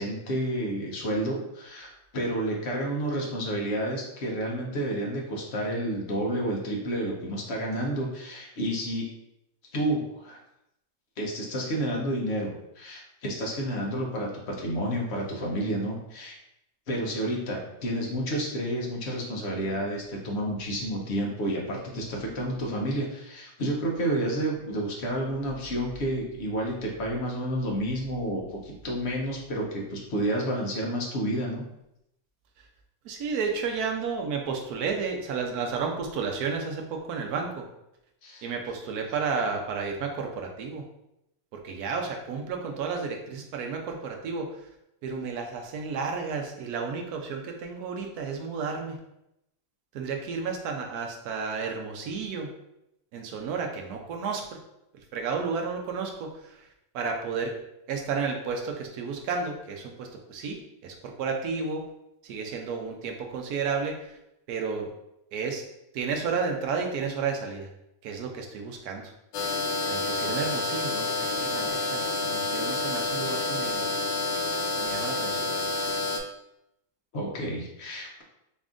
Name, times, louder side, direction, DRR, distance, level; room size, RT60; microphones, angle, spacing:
voice 1, 0.0-9.0 9.7-10.4 11.2-16.4 16.9-31.6 38.2-38.4 77.1-78.2, right 1 dB, 55° left, -1 dB, 0.8 m, -30 dB
voice 2, 33.0-37.6 38.4-40.8 41.5-44.5 45.0-49.0 49.9-52.5 53.1-54.6 55.1-56.6 56.9-57.6 57.9-60.6 60.8-61.8 62.2-64.2 64.5-64.9 65.3-65.6 65.9-67.7 68.0-69.1 69.9-73.9 74.8-75.5, right 5 dB, 70° right, 2 dB, 1.0 m, -32 dB
sound 1, 69.3-76.2, left 2 dB, 85° left, 1.3 m, -29 dB
4.2 x 2.5 x 3.6 m, 0.82 s
omnidirectional pair, 2.0 m